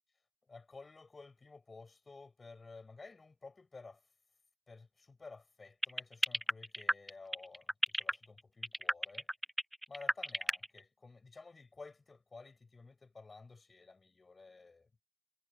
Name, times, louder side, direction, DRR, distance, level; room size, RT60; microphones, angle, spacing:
voice 1, 0.5-4.0 4.7-9.3 9.9-14.9, left 3 dB, 40° left, 7.4 m, -53 dB
sound 1, 5.8-10.8, equal, 5° right, 0.7 m, -31 dB
wide cardioid pair, 95°, 0 cm